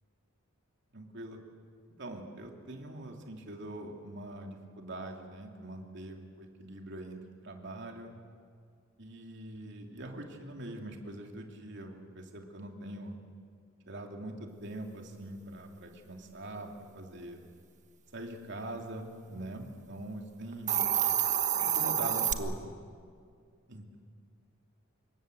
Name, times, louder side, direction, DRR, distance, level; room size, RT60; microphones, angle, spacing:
voice 1, 0.9-1.4 2.0-8.1 9.0-13.1 13.9-17.4 18.1-20.8 21.6-22.7 23.7-24.0, right 1 dB, 60° right, 2 dB, 2.7 m, -43 dB
Hiss, 20.5-22.3, right 9 dB, 35° right, 1.3 m, -28 dB
26.0 x 22.5 x 7.8 m, 2.2 s
head